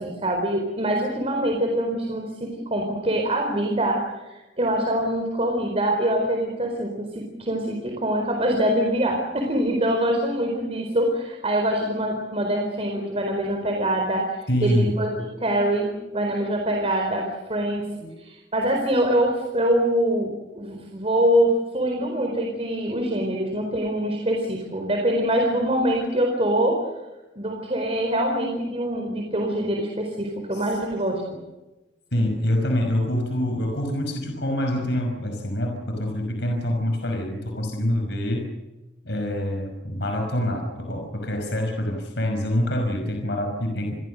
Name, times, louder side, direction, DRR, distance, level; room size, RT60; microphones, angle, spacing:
voice 1, 0.0-17.9 18.2-26.8 27.4-31.2, right 1 dB, 35° right, 2 dB, 4.5 m, -24 dB
voice 2, 14.5-15.0 18.0-18.1 30.5-30.6 32.1-38.5 39.0-43.9, left 1 dB, 65° left, 3 dB, 5.5 m, -26 dB
29.5 x 21.5 x 6.6 m, 1.1 s
head